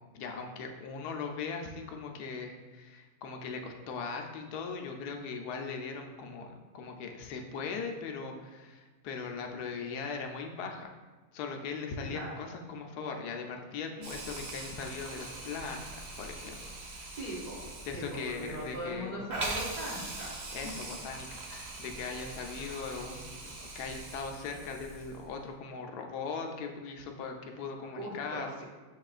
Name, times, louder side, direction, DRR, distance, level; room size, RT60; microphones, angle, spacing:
voice 1, 0.1-10.9 11.3-16.6 16.9-17.1 17.8-19.2 20.5-28.5, left 5 dB, 85° left, 3 dB, 1.1 m, -39 dB
Hiss, 14.0-25.3, right 2 dB, 70° right, 0.4 m, -42 dB
voice 2, 17.1-17.6 17.9-20.4 27.9-28.6, right 1 dB, 35° right, -9 dB, 0.8 m, -40 dB
7.4 x 3.0 x 2.4 m, 1.3 s
omnidirectional pair, 1.6 m